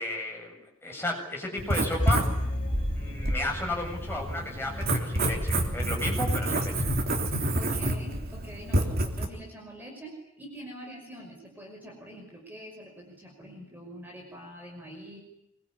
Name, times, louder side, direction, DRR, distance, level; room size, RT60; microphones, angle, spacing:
voice 1, 0.0-2.4 2.9-6.9, left 1 dB, 10° left, 0 dB, 7.5 m, -34 dB
Writing, 1.6-9.2, right 1 dB, 45° right, 3.3 m, -28 dB
sound 1, 2.0-4.2 4.5-4.6, left 1 dB, 35° left, 2.3 m, -33 dB
voice 2, 7.6-15.2, right 1 dB, 10° right, 0 dB, 5.8 m, -45 dB
25.5 x 23.0 x 9.9 m, 0.84 s
head